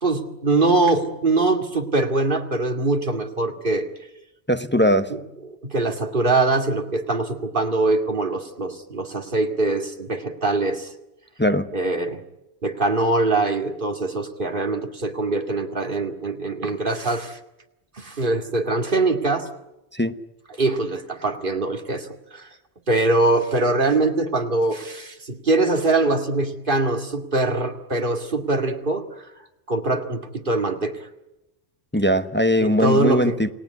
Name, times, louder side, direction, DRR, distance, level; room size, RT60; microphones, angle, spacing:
voice 1, 0.0-3.9 5.1-5.2 5.6-10.9 11.7-12.2 12.6-17.4 18.0-19.5 20.6-22.5 22.9-29.3 29.7-31.0 32.6-33.4, right 2 dB, 50° right, 5 dB, 2.4 m, -23 dB
voice 2, 4.5-5.1 11.4-11.7 19.9-20.1 31.9-33.5, equal, 10° left, 9 dB, 0.9 m, -20 dB
29.5 x 18.5 x 9.6 m, 0.97 s
omnidirectional pair, 1.1 m